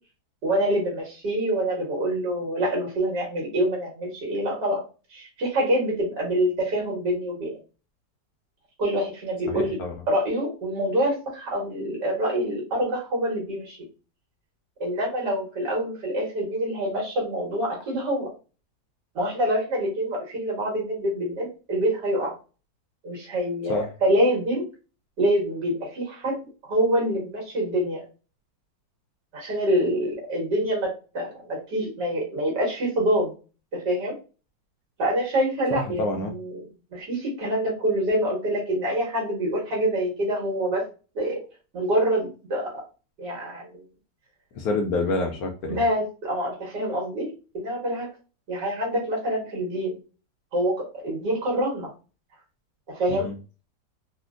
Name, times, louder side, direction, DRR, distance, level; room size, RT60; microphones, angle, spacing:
voice 1, 0.4-4.8 5.1-7.5 8.8-9.8 10.1-13.8 14.8-18.3 19.2-22.3 23.0-24.6 25.2-26.4 26.7-28.0 29.3-33.3 33.7-34.1 35.0-36.5 36.9-40.9 41.2-41.4 41.7-42.8 43.2-43.8 45.7-47.3 47.5-48.1 48.5-50.0 50.5-51.9 52.9-53.3, right 1 dB, 70° right, -3 dB, 2.0 m, -26 dB
voice 2, 9.5-9.9 23.7-23.9 35.8-36.3 44.5-45.8 53.1-53.3, left 2 dB, 70° left, 3 dB, 0.9 m, -27 dB
4.2 x 2.1 x 2.4 m, 0.33 s
omnidirectional pair, 1.9 m